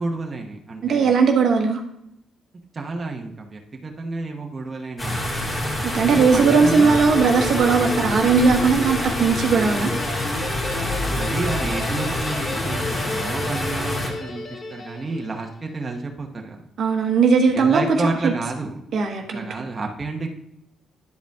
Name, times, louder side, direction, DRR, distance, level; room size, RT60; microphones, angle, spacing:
voice 1, 0.0-1.2 2.7-5.2 5.8-7.0 10.8-16.6 17.5-18.8 19.3-20.3, right 3 dB, 30° right, 1 dB, 1.0 m, -30 dB
voice 2, 0.8-1.8 5.8-9.9 16.8-18.0 18.2-18.3 18.9-19.5, right 5 dB, 65° right, 3 dB, 1.1 m, -18 dB
sound 1, 5.0-14.1, left 1 dB, 25° left, 2.2 m, -27 dB
Guitar, 6.2-15.5, left 3 dB, 45° left, 0.9 m, -32 dB
sound 2, 10.6-13.2, left 1 dB, 75° left, 3.3 m, -35 dB
10.5 x 5.1 x 3.5 m, 0.78 s
cardioid pair, 90°, 0 cm